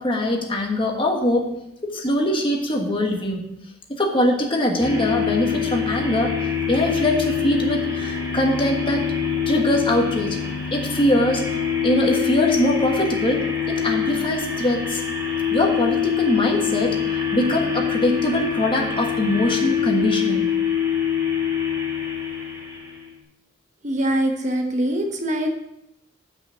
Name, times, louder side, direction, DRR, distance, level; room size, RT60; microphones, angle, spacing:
voice 1, 0.0-1.5 1.8-3.5 3.9-6.3 6.7-9.1 9.5-10.4 10.7-15.0 15.5-20.5, left 1 dB, 25° left, 1 dB, 1.4 m, -22 dB
sound 1, 4.8-23.1, left 8 dB, 15° right, 2.5 m, -25 dB
voice 2, 23.8-25.5, right 1 dB, 35° right, 4 dB, 1.0 m, -23 dB
7.8 x 5.9 x 7.1 m, 0.82 s
head